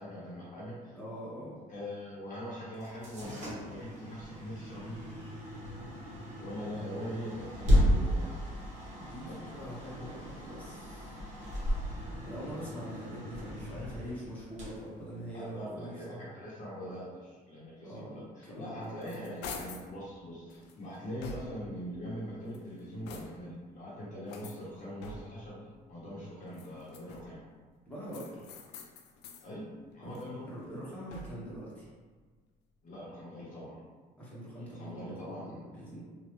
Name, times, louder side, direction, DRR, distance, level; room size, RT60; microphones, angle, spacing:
voice 1, 0.0-1.0 1.7-4.9 6.4-8.4 9.2-9.4 15.3-27.4 29.4-30.4 32.8-33.8 34.6-35.6, equal, 50° left, -6 dB, 1.0 m, -42 dB
voice 2, 0.9-1.6 9.0-11.2 12.2-16.3 17.8-18.9 27.8-28.5 30.0-31.9 34.2-36.0, equal, 10° left, -9 dB, 1.2 m, -43 dB
sound 1, 2.7-15.7, equal, 45° right, 1.2 m, -34 dB
sound 2, 18.6-19.9 20.5-21.8 22.4-23.6 24.3-25.5 26.4-27.5 28.1-29.5 29.9-31.6, left 3 dB, 85° left, 0.4 m, -47 dB
3.2 x 2.4 x 3.0 m, 1.4 s
cardioid pair, 110°, 17 cm